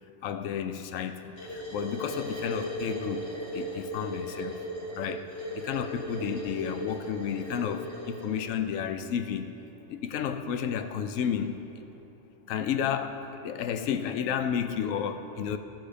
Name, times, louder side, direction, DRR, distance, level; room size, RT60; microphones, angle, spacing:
voice 1, 0.2-3.2 3.5-4.6 4.9-5.2 5.5-9.5 9.9-11.5 12.5-13.2 13.4-15.6, left 8 dB, 75° left, 8 dB, 1.0 m, -31 dB
sound 1, 1.4-8.5, equal, 55° left, 3.0 m, -37 dB
14.0 x 6.0 x 5.0 m, 2.9 s
omnidirectional pair, 1.4 m